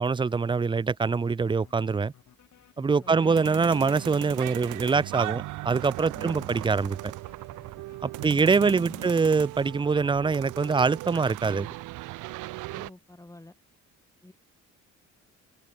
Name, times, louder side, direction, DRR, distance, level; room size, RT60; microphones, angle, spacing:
voice 1, 0.0-2.1 2.8-7.1 8.0-11.7, right 4 dB, 15° right, 0.4 m, -24 dB
sound 1, 1.6-4.2 6.3-10.2, left 10 dB, 65° left, 7.1 m, -56 dB
voice 2, 3.0-3.3 6.1-6.5 8.2-9.1 12.7-13.6 14.2-14.3, left 1 dB, 10° left, 7.1 m, -47 dB
sound 2, 3.1-12.9, right 19 dB, 85° right, 0.5 m, -37 dB
cardioid pair, 90°, 30 cm